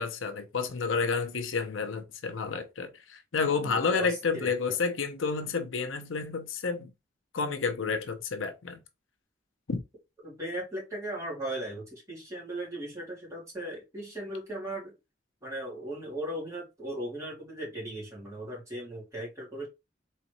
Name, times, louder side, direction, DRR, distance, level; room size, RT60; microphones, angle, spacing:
voice 1, 0.0-6.9 7.3-8.8 9.7-9.8, left 5 dB, 85° left, 0.7 m, -30 dB
voice 2, 3.5-4.8 10.2-14.9 15.4-19.7, right 1 dB, 15° right, 2.4 m, -38 dB
3.9 x 3.3 x 3.0 m
head